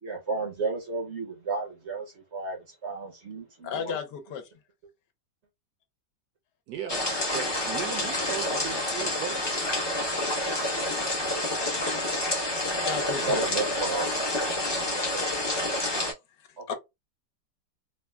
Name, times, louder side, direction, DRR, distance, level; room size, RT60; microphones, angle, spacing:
voice 1, 0.0-4.0 10.5-10.6 10.9-11.0 11.3-11.8 13.0-15.3 16.6-16.7, right 4 dB, 55° right, 0.8 m, -34 dB
voice 2, 3.6-4.5 12.8-13.4 16.4-16.7, left 7 dB, 80° left, 1.3 m, -34 dB
voice 3, 6.7-9.9, right 9 dB, 75° right, 1.1 m, -38 dB
sound 1, 6.9-16.1, left 1 dB, 35° left, 0.4 m, -28 dB
3.4 x 2.1 x 2.2 m
omnidirectional pair, 1.9 m